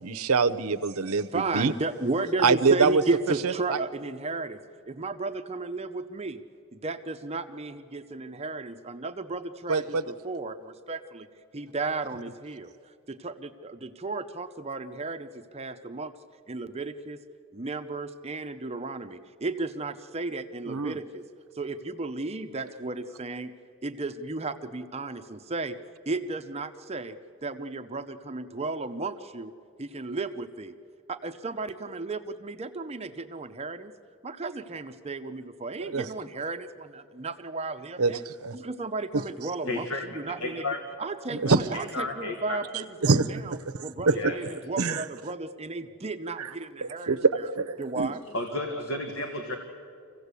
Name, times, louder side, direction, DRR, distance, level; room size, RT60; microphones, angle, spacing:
voice 1, 0.0-1.7 2.4-3.0 9.7-10.0 20.7-21.0 35.9-36.0 38.0-38.1 38.4-38.6 41.3-41.6 43.0-43.3 44.1-44.3 44.8-45.0 46.8-47.3 47.6-48.1, right 4 dB, 80° right, 14 dB, 0.8 m, -24 dB
voice 2, 1.3-4.6 4.9-6.4 6.7-11.3 11.5-16.1 16.5-17.2 17.5-21.3 21.5-23.5 23.8-25.8 26.1-29.5 29.8-30.7 31.1-33.9 34.2-38.2 38.5-40.7 41.0-47.5 47.8-48.2, right 3 dB, 30° right, 8 dB, 0.6 m, -34 dB
voice 3, 39.7-40.8 41.5-42.6 44.1-44.4 48.3-49.5, left 2 dB, 60° left, 4 dB, 1.6 m, -33 dB
25.5 x 16.0 x 8.3 m, 2.4 s
head